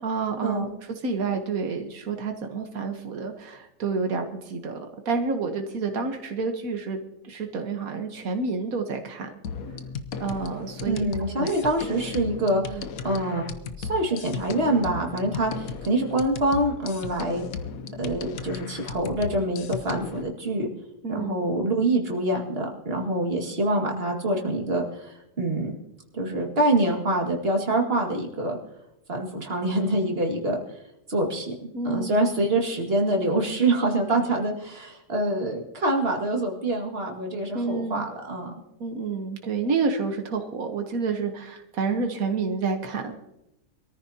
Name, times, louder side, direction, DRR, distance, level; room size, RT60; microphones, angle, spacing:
voice 1, 0.0-7.0 7.2-9.3 10.2-11.1 11.3-11.5 12.7-12.8 21.0-21.4 31.7-32.3 37.5-38.1 38.8-43.1, right 4 dB, 90° right, 5 dB, 1.6 m, -29 dB
sound 1, 9.4-20.2, left 5 dB, 90° left, 1.3 m, -36 dB
voice 2, 10.9-12.8 13.0-13.5 13.8-17.4 18.0-20.7 21.1-25.7 26.1-28.6 29.1-30.6 31.1-38.5, right 1 dB, 45° right, 0 dB, 2.3 m, -25 dB
23.0 x 14.0 x 2.8 m, 0.89 s
omnidirectional pair, 1.4 m